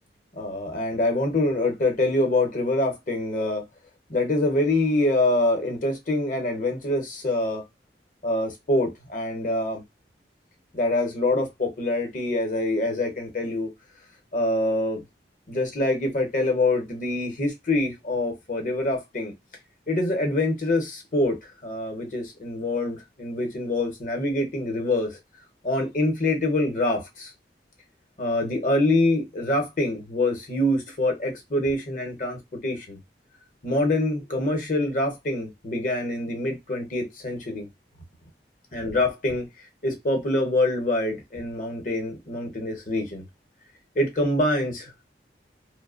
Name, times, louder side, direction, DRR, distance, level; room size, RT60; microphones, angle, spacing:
voice 1, 0.4-3.6 4.1-7.6 8.2-9.8 10.7-13.7 14.3-15.0 15.5-19.3 19.9-21.4 21.6-25.1 25.6-27.3 28.2-33.0 33.6-37.7 38.7-39.5 39.8-43.2 43.9-45.0, left 2 dB, 45° left, 0.8 m, -25 dB
2.7 x 2.0 x 2.4 m
head